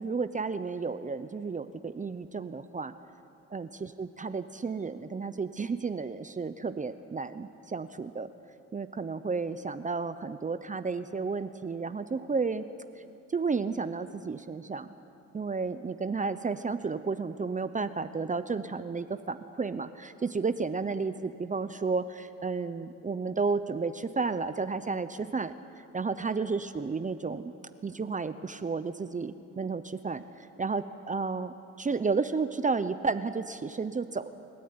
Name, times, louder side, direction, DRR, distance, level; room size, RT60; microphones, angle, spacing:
voice 1, 0.0-2.9 3.5-8.3 8.7-12.7 13.0-13.1 13.3-14.9 15.3-27.5 27.8-34.3, right 4 dB, 25° right, 11 dB, 0.8 m, -32 dB
28.5 x 14.0 x 9.7 m, 2.6 s
cardioid pair, 90°, 30 cm